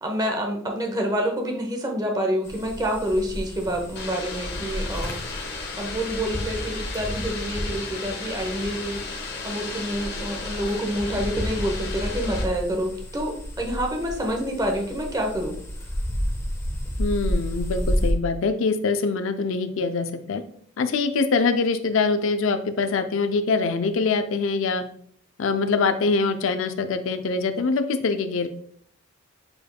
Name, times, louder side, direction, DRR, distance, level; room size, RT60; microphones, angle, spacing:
voice 1, 0.0-5.1 5.8-15.6, equal, 20° right, 2 dB, 0.8 m, -27 dB
sound 1, 2.4-18.1, equal, 15° left, 0.7 m, -32 dB
sound 2, 4.0-12.4, left 2 dB, 50° left, 1.0 m, -33 dB
voice 2, 17.0-20.4 20.8-24.8 25.4-28.5, left 4 dB, 70° left, 9 dB, 0.4 m, -24 dB
6.9 x 3.4 x 2.2 m, 0.62 s
head